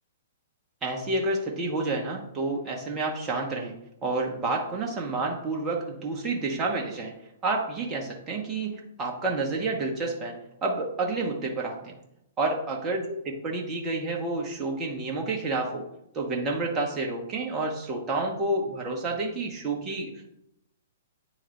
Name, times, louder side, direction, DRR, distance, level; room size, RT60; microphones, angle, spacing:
voice 1, 0.8-3.7 4.0-7.1 7.4-10.4 10.6-11.9 12.4-15.9 16.1-20.3, right 2 dB, 20° right, 0 dB, 1.1 m, -29 dB
9.3 x 3.8 x 3.2 m, 0.79 s
figure-of-eight pair, 115°, 0 cm